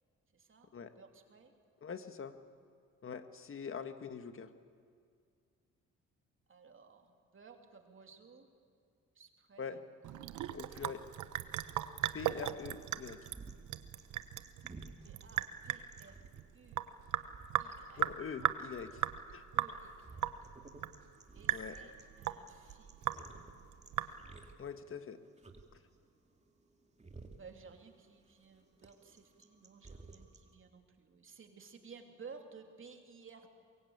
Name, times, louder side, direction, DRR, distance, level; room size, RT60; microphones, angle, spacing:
voice 1, 0.3-1.5 6.5-8.5 9.1-9.8 10.2-10.7 15.0-16.2 16.5-16.8 17.6-18.1 19.5-20.6 21.3-23.5 27.3-33.5, right 5 dB, 40° right, 4 dB, 3.0 m, -56 dB
voice 2, 1.8-2.4 3.0-4.5 9.6-9.8 10.5-11.0 12.1-13.2 17.9-18.9 19.3-19.4 21.5-21.8 24.6-25.2 25.7-25.8, left 6 dB, 45° left, 9 dB, 1.8 m, -43 dB
Sink (filling or washing) / Drip, 10.0-24.5, right 12 dB, 75° right, 1.1 m, -38 dB
sound 1, 11.5-30.5, right 3 dB, 20° right, 2.5 m, -56 dB
24.0 x 22.5 x 8.8 m, 2.2 s
cardioid pair, 90°, 30 cm